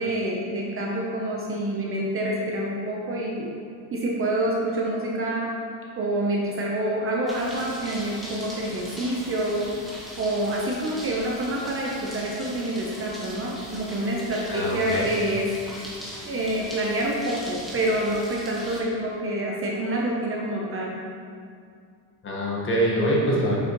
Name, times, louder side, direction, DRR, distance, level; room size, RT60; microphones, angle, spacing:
voice 1, 0.0-3.5 3.9-5.5 6.0-9.7 10.2-15.5 16.2-20.9, right 1 dB, 30° right, -2 dB, 0.7 m, -27 dB
sound 1, 7.3-18.8, equal, ahead, 1.2 m, -40 dB
voice 2, 14.5-15.1 22.2-23.6, equal, 30° left, -4 dB, 1.3 m, -24 dB
7.3 x 6.1 x 3.0 m, 2.2 s
cardioid pair, 160°, 43 cm